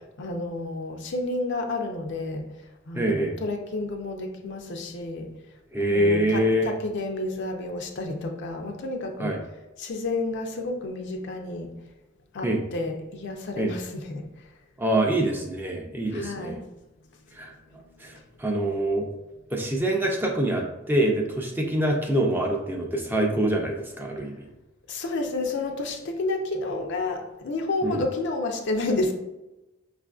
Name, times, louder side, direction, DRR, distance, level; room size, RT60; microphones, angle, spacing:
voice 1, 0.2-2.5 2.9-5.4 5.9-9.4 9.8-11.7 12.3-14.5 16.1-16.6 17.9-18.2 24.9-29.1, left 2 dB, 60° left, 4 dB, 0.5 m, -30 dB
voice 2, 2.9-3.3 5.7-6.7 9.2-9.4 12.4-12.6 13.6-13.7 14.8-16.6 17.4-17.5 18.0-19.1 19.5-24.5 27.8-28.0, right 1 dB, 10° right, 1 dB, 0.4 m, -25 dB
5.0 x 2.4 x 2.3 m, 1.0 s
head